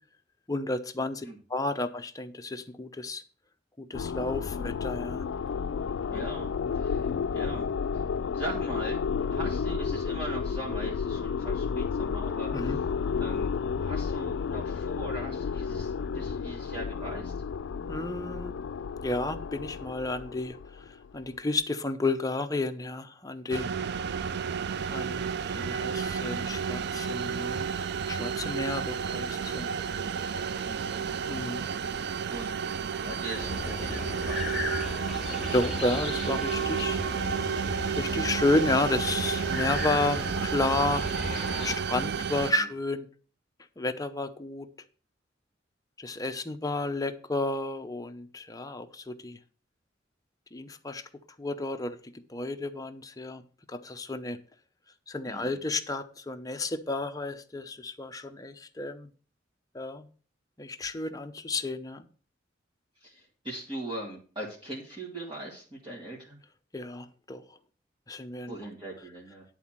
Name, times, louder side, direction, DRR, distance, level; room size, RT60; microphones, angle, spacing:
voice 1, 0.5-3.2 3.8-5.2 12.5-12.8 17.9-18.5 19.0-20.6 20.9-23.7 24.9-25.3 25.5-27.7 28.1-29.7 31.3-31.7 35.5-37.0 38.0-41.0 41.6-43.1 43.8-44.7 46.0-49.4 50.5-51.0 51.4-53.4 53.7-54.4 55.1-59.1 59.7-60.1 60.6-62.0 66.7-67.4 68.1-68.5, left 2 dB, 20° left, 7 dB, 0.7 m, -31 dB
sound 1, 3.9-21.3, left 6 dB, 80° left, 0.3 m, -32 dB
voice 2, 6.1-8.0 8.3-9.0 9.3-12.8 13.2-13.5 13.8-17.3 30.6-31.1 32.3-32.6 33.0-34.5 42.6-42.7 55.3-55.6 63.0-66.4 68.5-69.4, right 1 dB, 25° right, -5 dB, 2.1 m, -40 dB
sound 2, 23.5-42.5, right 7 dB, 60° right, 0.4 m, -32 dB
sound 3, 33.3-41.8, left 1 dB, ahead, 1.9 m, -35 dB
10.5 x 4.1 x 7.4 m, 0.40 s
head